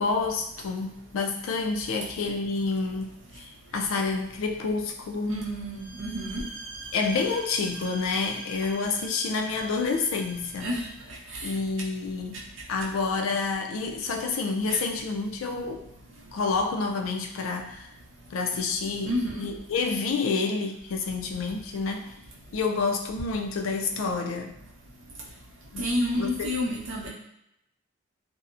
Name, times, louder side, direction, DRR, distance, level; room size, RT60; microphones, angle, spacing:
voice 1, 0.0-5.4 6.9-10.7 11.4-12.4 12.7-15.9 16.3-17.9 18.3-22.1 22.5-24.6 25.7-25.9 26.1-26.3, left 4 dB, 85° left, 3 dB, 0.4 m, -28 dB
voice 2, 5.3-6.4 10.6-10.8 19.1-19.5 25.8-27.1, left 1 dB, 75° right, -3 dB, 0.7 m, -29 dB
sound 1, 5.7-11.0, right 3 dB, 45° right, 0.8 m, -43 dB
2.6 x 2.1 x 2.4 m, 0.80 s
head